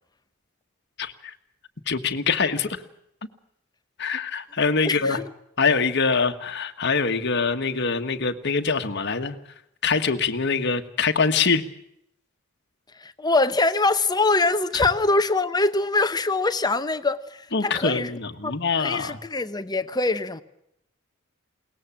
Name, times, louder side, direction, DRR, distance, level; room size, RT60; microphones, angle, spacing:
voice 1, 1.0-1.3 1.9-2.8 4.0-5.2 5.6-9.4 9.8-11.6 14.7-14.8 17.5-19.2, left 4 dB, 55° left, 1.5 m, -24 dB
voice 2, 4.8-5.3 13.0-18.1 18.4-18.5 18.8-20.4, left 3 dB, 20° left, 0.9 m, -23 dB
22.0 x 19.0 x 7.4 m
head